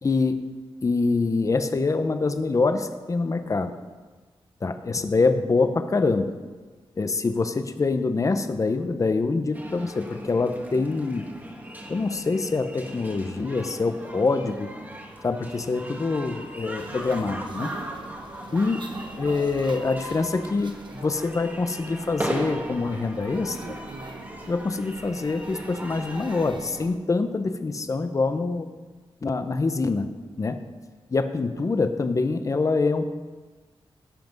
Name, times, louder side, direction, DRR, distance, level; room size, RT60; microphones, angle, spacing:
voice 1, 0.0-0.4 0.8-3.7 4.6-6.3 7.0-11.3 11.9-14.7 15.2-17.7 18.5-18.9 19.2-23.7 24.5-28.7 29.2-30.7 31.1-33.2, left 3 dB, 35° left, 9 dB, 0.8 m, -25 dB
sound 1, 9.5-26.5, right 1 dB, 20° right, 1.5 m, -38 dB
sound 2, 16.8-27.0, right 4 dB, 55° right, 1.0 m, -42 dB
17.0 x 5.9 x 5.3 m, 1.4 s
wide cardioid pair, 105°, 10 cm